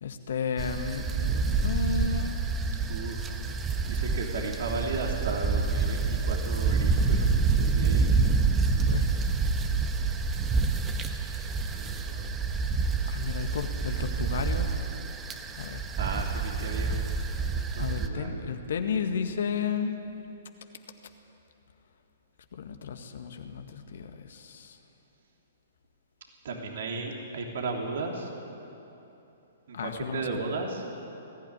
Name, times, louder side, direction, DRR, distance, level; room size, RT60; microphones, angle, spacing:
voice 1, 0.0-2.4 8.8-9.1 13.1-14.7 15.5-15.8 17.8-20.1 22.6-24.8 29.7-30.3, left 6 dB, 65° left, 6 dB, 1.8 m, -33 dB
sound 1, 0.6-18.1, right 4 dB, 20° right, 1.4 m, -27 dB
voice 2, 2.9-3.3 3.9-8.2 11.7-12.3 16.0-17.2 17.7-18.4 26.4-28.3 29.7-30.8, right 3 dB, 60° right, 1 dB, 3.2 m, -35 dB
20.5 x 15.0 x 10.0 m, 2.9 s
figure-of-eight pair, 120°, 0 cm